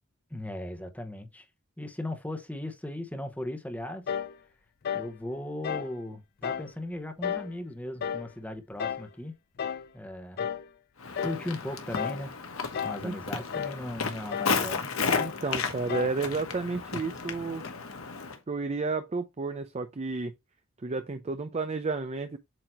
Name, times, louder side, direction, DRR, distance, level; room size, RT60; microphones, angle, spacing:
voice 1, 0.3-1.5 1.8-4.0 4.9-9.3 9.9-10.5 11.2-12.3 12.8-14.9, left 1 dB, 5° left, 1.0 m, -37 dB
sound 1, 4.1-4.4 4.8-5.1 5.6-5.9 6.4-6.7 7.2-7.5 8.0-8.3 8.8-9.1 9.6-9.9 10.4-10.7 11.2-11.5 12.0-12.3 12.7-13.1 13.5-13.8 14.3-14.6 15.1-15.4 15.9-16.2, left 8 dB, 50° left, 0.4 m, -33 dB
Walk footsteps, 11.0-18.4, left 5 dB, 75° left, 1.1 m, -33 dB
voice 2, 15.2-17.6 18.5-20.3 20.8-22.4, right 3 dB, 30° right, 0.5 m, -31 dB
7.8 x 2.9 x 4.4 m
head